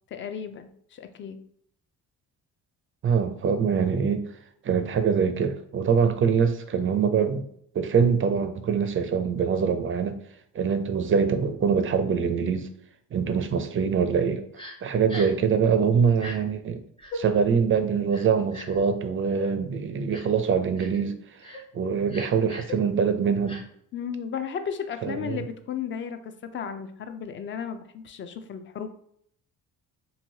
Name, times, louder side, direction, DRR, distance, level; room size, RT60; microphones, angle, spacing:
voice 1, 0.1-1.4 23.9-28.9, left 7 dB, 35° left, 0.4 m, -34 dB
voice 2, 3.0-4.2 4.6-7.5 7.7-10.2 10.5-12.7 13.1-14.5 14.8-16.8 17.1-21.1 21.7-23.6 25.0-25.4, right 6 dB, 35° right, 0.4 m, -24 dB
Crying sobbing, 14.6-14.7 15.1-15.4 16.1-16.4 17.0-17.2 18.1-18.8 19.4-19.5 20.1-20.4 20.8-21.0 21.4-21.6 22.1-22.7 23.5-23.6, left 1 dB, 15° left, 0.8 m, -38 dB
3.0 x 2.7 x 2.7 m
supercardioid pair, 80°, 39 cm